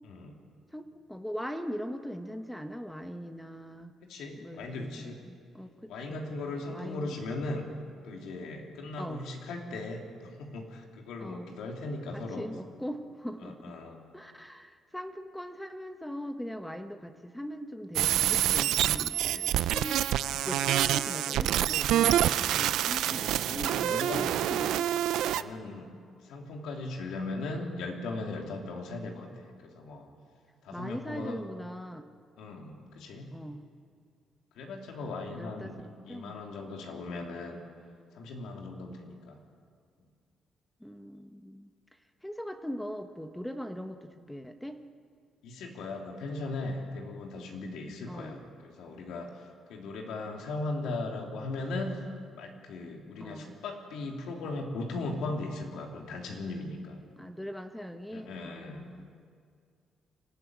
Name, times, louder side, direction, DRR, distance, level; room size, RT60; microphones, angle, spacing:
voice 1, 0.0-0.4 4.1-5.2 5.9-7.7 8.0-12.5 13.4-14.0 19.2-19.8 23.5-24.3 25.3-25.9 26.2-29.3 29.6-30.1 30.6-31.4 32.4-33.3 34.6-35.7 36.1-37.6 38.1-39.4 45.4-49.3 49.7-51.9 52.3-57.0 58.1-58.8, left 2 dB, 85° left, 1 dB, 3.2 m, -38 dB
voice 2, 0.7-3.9 4.3-7.1 9.0-9.2 11.2-11.5 12.1-13.8 14.1-19.4 19.7-24.9 30.7-32.0 33.3-33.6 35.3-35.7 36.1-36.4 40.8-41.7 42.2-44.8 48.1-48.4 53.2-53.5 57.2-59.1, equal, 5° left, 7 dB, 1.2 m, -40 dB
sound 1, 18.0-25.4, right 12 dB, 85° right, 0.5 m, -27 dB
24.0 x 14.0 x 9.6 m, 2.2 s
cardioid pair, 90°, 0 cm